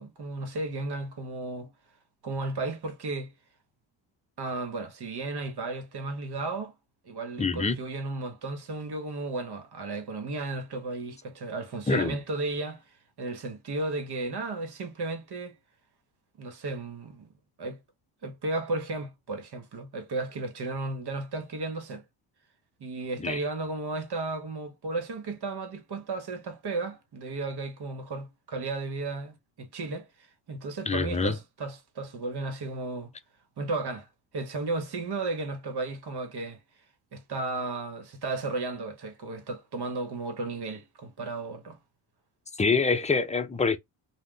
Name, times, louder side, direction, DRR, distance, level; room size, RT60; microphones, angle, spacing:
voice 1, 0.0-1.7 2.2-3.3 4.4-6.7 7.0-12.8 13.2-15.6 16.4-17.3 17.6-17.8 18.2-22.0 22.8-33.1 33.6-34.1 34.3-36.6 37.1-41.8, right 3 dB, 50° right, 1.3 m, -34 dB
voice 2, 7.4-7.8 11.9-12.2 23.2-23.4 30.9-31.4 42.6-43.8, left 4 dB, 15° left, 0.6 m, -25 dB
2.4 x 2.3 x 3.7 m
supercardioid pair, 55°, 48 cm